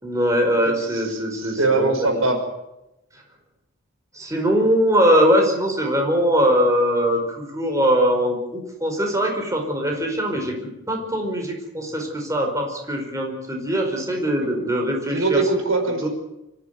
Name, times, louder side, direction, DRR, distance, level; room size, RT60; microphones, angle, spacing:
voice 1, 0.0-2.2 4.1-10.6 10.9-15.4 15.9-16.1, equal, 15° right, 2 dB, 5.0 m, -21 dB
voice 2, 1.4-2.4 14.4-14.5 15.1-16.1, right 3 dB, 85° right, 5 dB, 5.7 m, -21 dB
25.5 x 15.0 x 9.5 m, 0.91 s
head